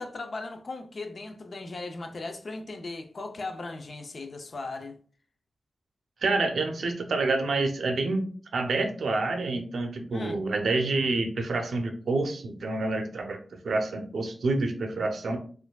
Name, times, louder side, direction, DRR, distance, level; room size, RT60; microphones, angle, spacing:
voice 1, 0.0-5.0 10.1-10.4, left 3 dB, 50° left, 0.5 m, -37 dB
voice 2, 6.2-13.4 13.6-15.4, right 3 dB, 90° right, 0.6 m, -28 dB
4.3 x 2.5 x 2.2 m
wide cardioid pair, 140°, 0 cm